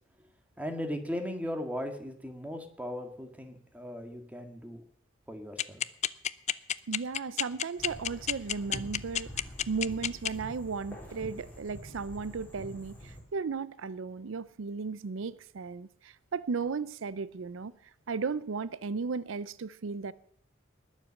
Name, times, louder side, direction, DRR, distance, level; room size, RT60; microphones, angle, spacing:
voice 1, 0.6-4.8 5.3-5.8, equal, 5° right, 1.8 m, -37 dB
sound 1, 5.6-10.3, left 10 dB, 35° left, 0.4 m, -28 dB
voice 2, 6.9-17.7 18.1-20.1, right 5 dB, 70° right, 0.5 m, -35 dB
sound 2, 7.8-13.2, equal, 10° left, 3.9 m, -46 dB
20.0 x 7.4 x 6.4 m
head